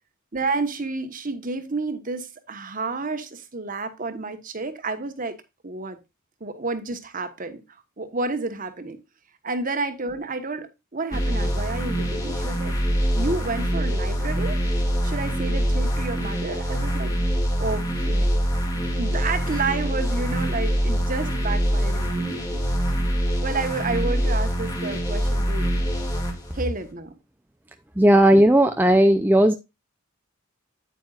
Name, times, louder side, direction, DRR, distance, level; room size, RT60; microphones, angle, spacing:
voice 1, 0.3-5.4 5.6-6.0 6.4-7.6 8.0-9.0 9.4-12.7 13.1-14.6 15.0-17.2 17.6-18.3 18.9-22.6 23.0-23.1 23.4-25.7 26.5-27.1, right 3 dB, 40° right, 1.3 m, -30 dB
sound 1, 11.1-26.6, equal, 15° left, 2.4 m, -24 dB
voice 2, 28.0-29.5, right 1 dB, 10° right, 0.6 m, -15 dB
9.2 x 8.9 x 2.5 m
head